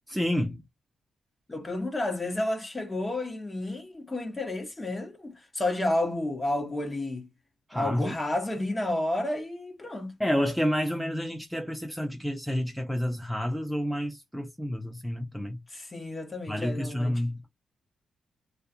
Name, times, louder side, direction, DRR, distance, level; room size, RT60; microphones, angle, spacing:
voice 1, 0.1-0.6 7.7-8.1 10.2-15.6 16.5-17.4, equal, ahead, 0.5 m, -29 dB
voice 2, 1.5-7.3 7.7-10.1 15.7-17.2, left 1 dB, 20° left, 0.9 m, -31 dB
2.3 x 2.3 x 2.7 m
cardioid pair, 95°, 0 cm